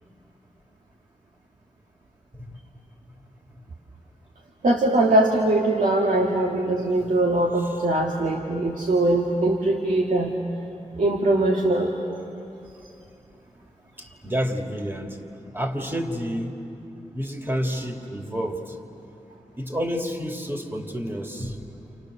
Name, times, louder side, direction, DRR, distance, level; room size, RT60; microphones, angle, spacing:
voice 1, 4.6-10.3 11.0-11.9, right 2 dB, 80° right, 0 dB, 1.9 m, -21 dB
voice 2, 14.0-15.2 15.5-16.6 17.1-18.8 19.6-21.7, equal, 15° right, 1 dB, 3.0 m, -29 dB
29.5 x 28.5 x 6.7 m, 2.8 s
cardioid pair, 60°, 13 cm